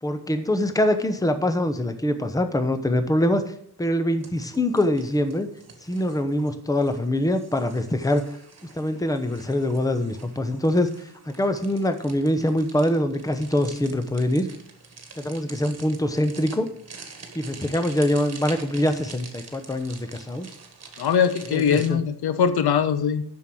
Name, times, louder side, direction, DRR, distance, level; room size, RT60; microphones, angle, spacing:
voice 1, 0.0-3.4 3.8-5.5 5.9-8.2 8.7-10.9 11.3-14.5 15.2-16.7 17.3-20.5 21.5-22.0, left 1 dB, 10° left, 9 dB, 0.8 m, -24 dB
sound 1, 4.2-21.9, right 4 dB, 40° right, 1.7 m, -46 dB
voice 2, 21.0-23.2, left 7 dB, 85° left, 11 dB, 0.9 m, -21 dB
7.3 x 6.2 x 7.6 m, 0.64 s
wide cardioid pair, 130°, 37 cm